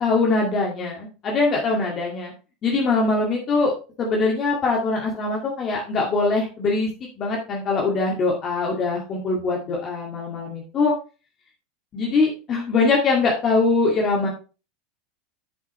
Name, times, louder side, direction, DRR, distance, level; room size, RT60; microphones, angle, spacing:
voice 1, 0.0-2.3 2.6-3.7 4.0-6.9 7.2-10.9 11.9-14.3, left 3 dB, 40° left, -1 dB, 2.1 m, -22 dB
8.1 x 7.3 x 3.2 m, 0.32 s
hypercardioid pair, 85°, 0 cm